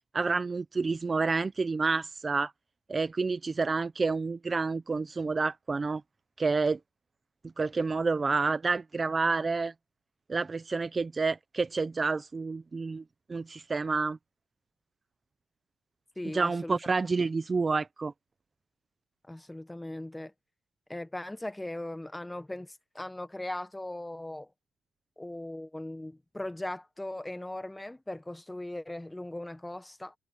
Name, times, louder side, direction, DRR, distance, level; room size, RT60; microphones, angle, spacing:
voice 1, 0.1-2.5 2.9-6.0 6.4-6.8 7.6-9.7 10.3-13.0 13.3-14.2 16.3-18.1, right 4 dB, 30° right, 0.8 m, -29 dB
voice 2, 16.1-16.8 19.3-20.3 20.9-24.5 25.2-30.1, left 1 dB, 10° left, 1.4 m, -39 dB
cardioid pair, 90°, 0 cm